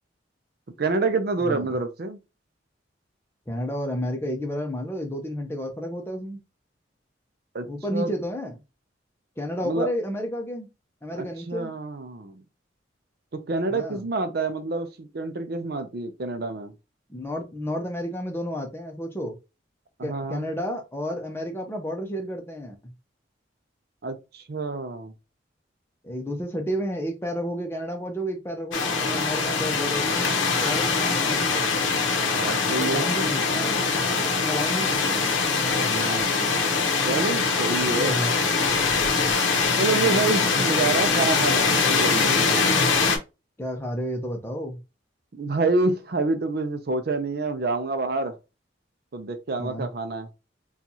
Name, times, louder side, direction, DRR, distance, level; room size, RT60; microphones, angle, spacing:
voice 1, 0.8-2.2 7.5-8.1 9.6-9.9 11.1-12.4 13.3-16.7 20.0-20.5 24.0-25.1 32.2-33.2 35.8-36.7 37.1-38.2 39.8-42.7 45.3-48.3 49.1-50.3, right 3 dB, 55° right, 0.5 m, -28 dB
voice 2, 1.4-1.8 3.5-6.4 7.7-8.5 9.4-10.7 11.0-11.7 13.7-14.0 17.1-19.4 20.0-22.9 26.0-30.3 30.6-31.6 32.8-33.9 34.4-35.3 37.9-38.3 40.0-40.9 43.6-44.8 49.6-49.9, equal, 15° left, 0.6 m, -31 dB
sound 1, 28.7-43.2, left 4 dB, 85° left, 0.8 m, -23 dB
4.3 x 2.4 x 2.7 m
head